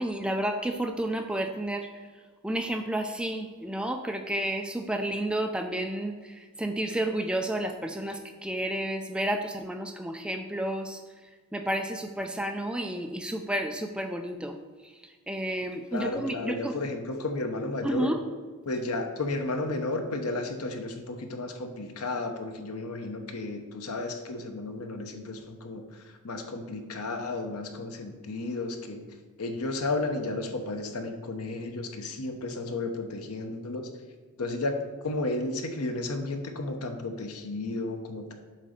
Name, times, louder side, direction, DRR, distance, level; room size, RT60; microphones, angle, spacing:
voice 1, 0.0-1.9 2.4-6.1 6.6-11.0 11.5-14.6 15.3-16.8 17.8-18.2, right 1 dB, 5° right, 5 dB, 0.4 m, -31 dB
voice 2, 15.9-18.1 18.7-25.8 26.2-29.0 29.4-33.9 34.4-34.8 35.0-38.3, left 2 dB, 85° left, 5 dB, 1.0 m, -33 dB
7.5 x 4.0 x 6.6 m, 1.5 s
head